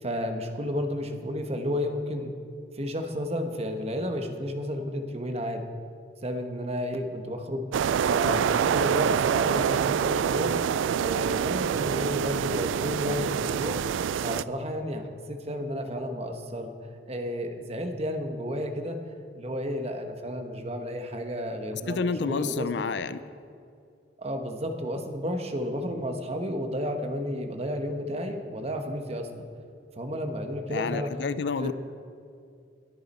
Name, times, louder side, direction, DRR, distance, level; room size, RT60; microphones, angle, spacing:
voice 1, 0.0-2.3 2.7-5.6 6.2-7.6 8.0-10.6 11.0-13.8 14.2-16.7 17.1-19.0 19.3-22.7 24.2-29.4 30.0-31.1 31.6-31.7, equal, 35° right, 5 dB, 1.2 m, -32 dB
sound 1, 7.7-14.4, right 8 dB, 85° right, 0.3 m, -26 dB
voice 2, 21.9-23.2 30.7-31.7, left 4 dB, 65° left, 14 dB, 0.5 m, -29 dB
21.5 x 9.7 x 4.3 m, 2.4 s
head